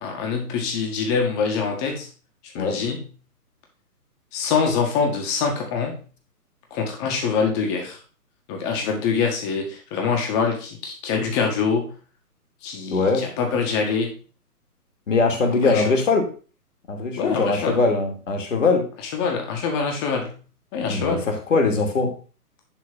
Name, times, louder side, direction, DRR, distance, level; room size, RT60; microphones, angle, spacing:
voice 1, 0.0-2.1 2.5-3.0 4.3-6.0 6.7-8.0 8.5-11.9 12.6-14.1 15.6-15.8 17.2-17.8 19.1-20.3 20.7-21.3, left 5 dB, 20° left, 2 dB, 1.7 m, -24 dB
voice 2, 12.9-13.2 15.1-16.3 16.9-18.8 20.9-22.1, left 3 dB, 50° left, 3 dB, 2.6 m, -21 dB
10.5 x 3.9 x 5.4 m, 0.38 s
figure-of-eight pair, 135°, 47 cm